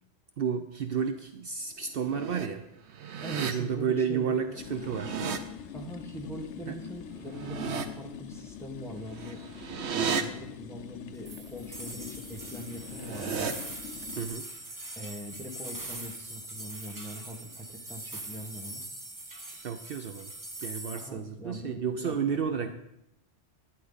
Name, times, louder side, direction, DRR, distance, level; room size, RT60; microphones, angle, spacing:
voice 1, 0.4-2.6 3.4-5.2 6.7-6.8 14.1-14.5 19.6-20.3 20.6-22.7, right 7 dB, 65° right, 8 dB, 0.7 m, -31 dB
sound 1, 1.9-2.5 2.9-3.5 4.7-5.4 7.2-7.9 9.1-10.2 12.8-13.5, right 6 dB, 80° right, 1.1 m, -34 dB
voice 2, 3.2-4.6 5.7-9.4 9.9-13.6 14.9-18.8 20.9-22.7, equal, ahead, 0 dB, 1.5 m, -42 dB
sound 2, 4.6-14.3, left 9 dB, 80° left, 1.0 m, -44 dB
sound 3, 11.3-21.1, right 2 dB, 20° right, 0.7 m, -42 dB
11.5 x 10.0 x 4.0 m, 0.82 s
omnidirectional pair, 1.1 m